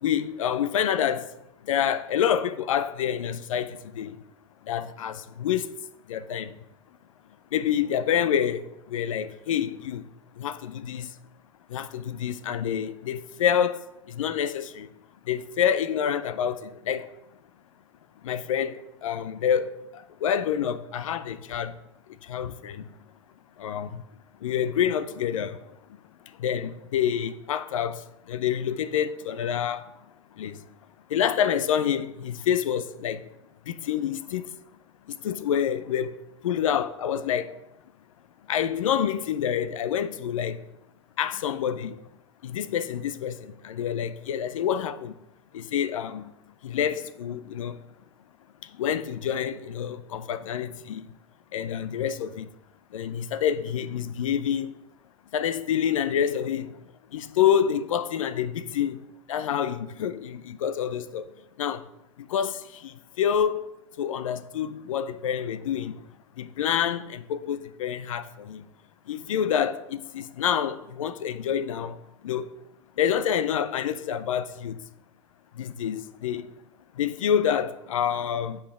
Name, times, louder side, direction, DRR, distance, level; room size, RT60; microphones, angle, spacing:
voice 1, 0.0-1.3 1.7-4.2 4.7-5.7 6.1-6.5 7.5-10.0 10.4-11.1 11.7-14.9 15.3-17.1 18.2-21.7 22.3-22.8 23.6-24.0 24.4-25.6 26.4-28.0 28.3-29.9 30.4-30.6 31.1-33.2 33.7-34.4 35.2-36.1 36.4-37.5 38.5-40.6 41.2-42.0 42.4-45.1 45.5-46.3 46.6-47.8 48.8-51.1 51.5-52.5 52.9-54.7 55.3-56.7 57.1-61.2 61.6-61.8 62.3-63.7 64.0-65.9 66.4-68.6 69.1-72.0 72.2-72.5 73.0-74.8 75.6-76.5 77.0-78.6, left 9 dB, 75° left, 0.5 m, -27 dB
7.1 x 5.5 x 5.0 m
hypercardioid pair, 100°, 17 cm